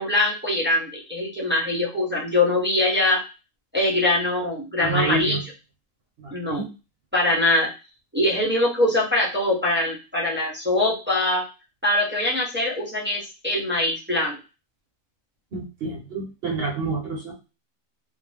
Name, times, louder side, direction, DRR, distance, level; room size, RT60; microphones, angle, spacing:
voice 1, 0.0-3.2 3.7-5.4 6.3-6.7 7.1-7.7 8.1-11.4 11.8-14.4, left 1 dB, 15° right, -5 dB, 0.4 m, -23 dB
voice 2, 4.8-5.4 6.2-6.7 15.5-17.3, right 3 dB, 55° right, 0 dB, 0.8 m, -28 dB
2.5 x 2.1 x 3.2 m, 0.30 s
omnidirectional pair, 1.4 m